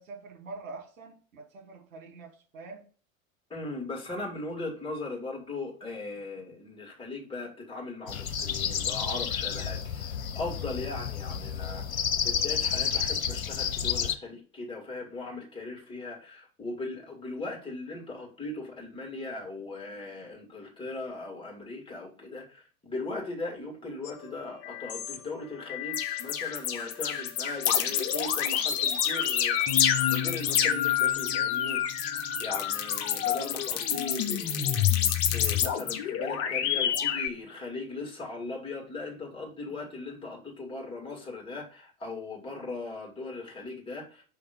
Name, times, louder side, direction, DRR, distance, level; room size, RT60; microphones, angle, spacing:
voice 1, 0.0-2.9, right 3 dB, 65° right, 2.0 m, -45 dB
voice 2, 3.5-44.2, left 3 dB, 10° left, 2.3 m, -39 dB
sound 1, 8.1-14.2, left 7 dB, 75° left, 0.8 m, -30 dB
sound 2, 24.1-24.2 24.6-25.2 25.7-37.3, left 9 dB, 35° left, 0.8 m, -27 dB
5.8 x 3.5 x 5.2 m
figure-of-eight pair, 85°, 42 cm